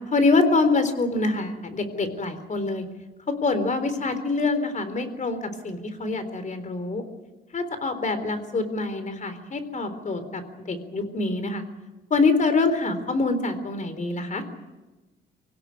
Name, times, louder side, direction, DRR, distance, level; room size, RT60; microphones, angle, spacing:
voice 1, 0.0-2.9 3.3-7.0 7.5-11.6 12.1-14.4, left 3 dB, 40° left, 10 dB, 3.9 m, -25 dB
25.5 x 16.5 x 9.6 m, 1.1 s
cardioid pair, 90°, 20 cm